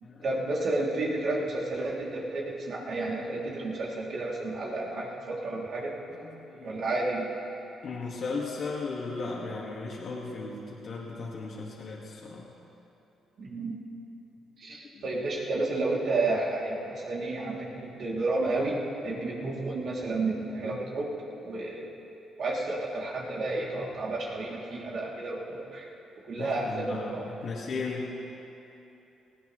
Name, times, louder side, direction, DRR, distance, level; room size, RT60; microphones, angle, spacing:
voice 1, 0.2-5.9 6.6-7.2 13.4-13.8 14.6-18.8 19.0-21.1 21.4-21.9 22.4-25.9 26.3-27.3, right 2 dB, 60° right, -4 dB, 3.3 m, -31 dB
voice 2, 6.1-6.7 7.8-12.5 14.9-15.1 26.4-28.3, left 3 dB, 55° left, -5 dB, 2.2 m, -36 dB
19.0 x 17.0 x 3.4 m, 2.9 s
cardioid pair, 90°, 0 cm